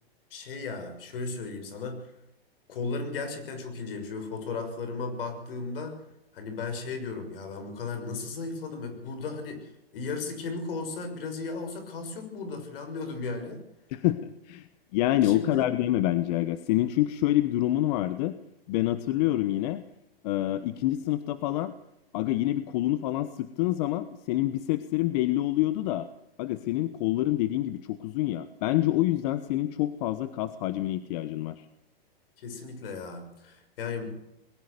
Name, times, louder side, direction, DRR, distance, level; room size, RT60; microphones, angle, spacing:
voice 1, 0.3-2.1 2.7-6.0 6.3-13.6 15.2-15.7 32.4-34.2, left 4 dB, 65° left, 7 dB, 6.3 m, -35 dB
voice 2, 13.9-14.7 14.9-18.3 18.7-19.8 20.2-21.7 22.1-26.1 26.4-31.6, left 15 dB, 40° left, 13 dB, 1.1 m, -27 dB
21.0 x 18.0 x 6.8 m, 0.86 s
hypercardioid pair, 140°, 30 cm